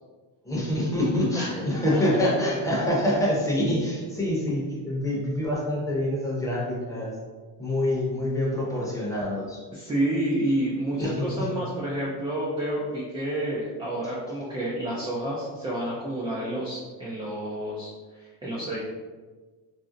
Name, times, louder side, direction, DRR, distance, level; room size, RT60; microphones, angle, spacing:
voice 1, 0.4-7.1 7.6-9.6 11.0-11.5, left 1 dB, 10° left, -5 dB, 0.8 m, -26 dB
voice 2, 9.7-18.8, right 1 dB, 15° right, -6 dB, 0.4 m, -29 dB
2.6 x 2.0 x 3.7 m, 1.4 s
cardioid pair, 125°, 43 cm